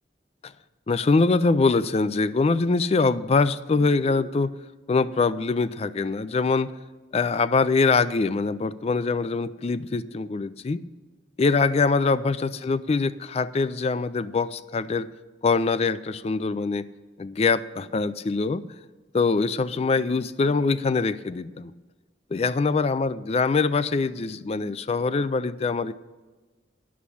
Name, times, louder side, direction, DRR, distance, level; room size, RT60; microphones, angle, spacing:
voice 1, 0.9-4.5 4.9-6.7 7.1-10.8 11.4-15.1 15.4-16.9 17.2-18.6 19.1-21.7 22.3-25.9, left 4 dB, 35° left, 15 dB, 0.3 m, -23 dB
9.5 x 7.1 x 8.3 m, 1.3 s
head